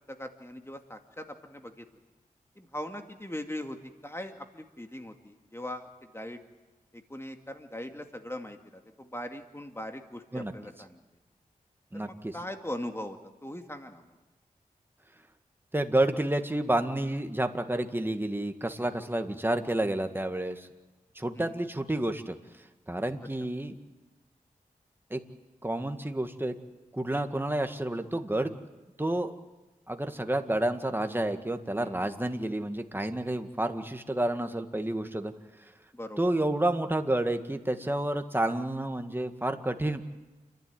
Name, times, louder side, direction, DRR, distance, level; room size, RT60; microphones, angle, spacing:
voice 1, 0.1-1.8 2.6-3.8 4.0-6.4 6.9-11.0 11.9-14.2 21.3-21.6 31.7-32.0 35.9-36.3, left 1 dB, 15° left, 5 dB, 2.2 m, -40 dB
voice 2, 11.9-12.4 15.7-20.7 21.2-22.4 22.9-23.8 25.1-25.2 25.6-26.5 26.9-28.5 29.0-29.3 29.9-35.3 36.2-40.0, right 1 dB, 15° right, 7 dB, 1.9 m, -30 dB
29.0 x 12.0 x 9.5 m, 1.1 s
cardioid pair, 45°, 14 cm